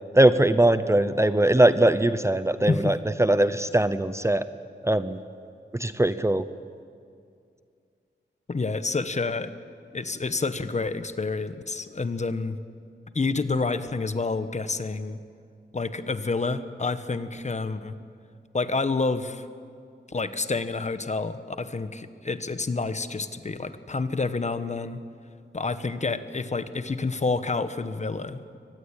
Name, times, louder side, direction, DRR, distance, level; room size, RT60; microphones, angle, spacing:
voice 1, 0.1-4.4 4.8-5.2 5.7-6.4, right 1 dB, 15° right, 12 dB, 0.7 m, -21 dB
voice 2, 2.6-2.9 8.5-9.5 9.9-12.6 13.1-15.2 15.7-18.0 18.5-19.5 20.1-25.0 25.5-28.6, left 3 dB, 40° left, 11 dB, 1.2 m, -28 dB
23.5 x 19.5 x 8.9 m, 2.3 s
wide cardioid pair, 105°, 19 cm